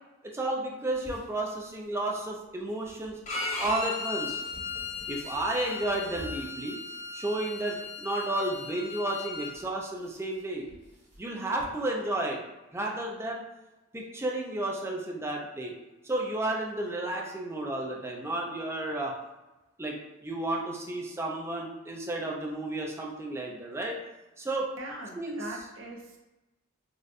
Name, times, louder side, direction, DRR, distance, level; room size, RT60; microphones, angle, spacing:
voice 1, 0.3-3.2 3.6-4.4 5.1-6.8 7.1-10.7 11.2-12.4 12.7-13.4 13.9-15.8 16.0-19.1 19.8-20.0 20.2-24.0 24.4-24.7 25.2-25.4, right 1 dB, 15° right, -1 dB, 0.5 m, -32 dB
sound 1, 0.9-11.6, equal, 35° right, 1.3 m, -53 dB
Bowed string instrument, 3.3-9.5, left 4 dB, 35° left, 0.5 m, -36 dB
voice 2, 24.8-26.2, right 2 dB, 65° right, -1 dB, 0.7 m, -41 dB
4.0 x 2.3 x 2.5 m, 1.0 s
head